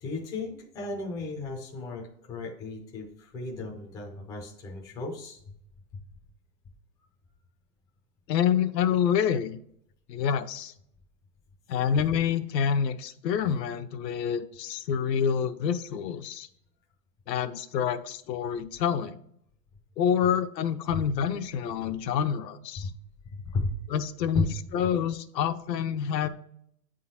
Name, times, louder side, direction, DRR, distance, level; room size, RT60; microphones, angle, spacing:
voice 1, 0.0-5.4 5.9-6.0 20.9-21.0 21.8-21.9 22.8-22.9 23.3-23.7 24.3-24.5, left 3 dB, 10° left, -1 dB, 0.4 m, -34 dB
voice 2, 8.3-9.6 10.1-10.7 11.7-16.5 17.3-19.2 20.0-22.9 23.9-26.3, left 8 dB, 80° left, 8 dB, 0.8 m, -27 dB
8.6 x 3.8 x 4.2 m, 0.70 s
hypercardioid pair, 145°, 49 cm